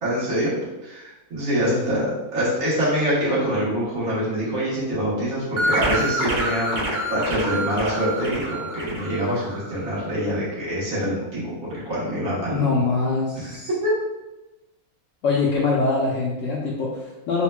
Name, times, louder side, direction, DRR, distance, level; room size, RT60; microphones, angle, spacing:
voice 1, 0.0-11.5 11.8-12.7 13.3-13.6 13.8-13.9, equal, 75° right, -8 dB, 1.7 m, -25 dB
voice 2, 1.7-2.0 12.5-13.7 15.2-17.4, left 4 dB, 65° left, -6 dB, 0.9 m, -23 dB
sound 1, 5.6-9.9, right 1 dB, 55° right, 0.5 m, -27 dB
5.5 x 2.1 x 2.2 m, 1.0 s
omnidirectional pair, 1.6 m